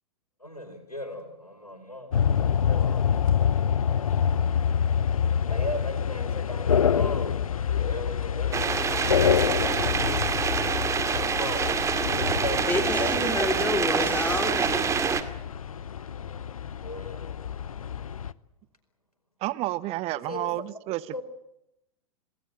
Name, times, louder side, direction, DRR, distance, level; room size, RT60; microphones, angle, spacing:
voice 1, 0.4-3.1 5.5-9.7 11.0-13.5 16.8-17.4 20.1-20.5 21.1-21.2, left 1 dB, 90° left, 7 dB, 4.9 m, -37 dB
sound 1, 2.1-18.3, left 8 dB, 70° left, 0.8 m, -27 dB
sound 2, 8.5-15.2, right 6 dB, 15° right, 2.1 m, -26 dB
voice 2, 12.7-14.8, left 3 dB, 10° left, 6 dB, 3.5 m, -28 dB
voice 3, 19.4-21.2, right 17 dB, 35° right, 18 dB, 1.0 m, -30 dB
27.5 x 18.5 x 7.7 m, 0.83 s
figure-of-eight pair, 95°, 19 cm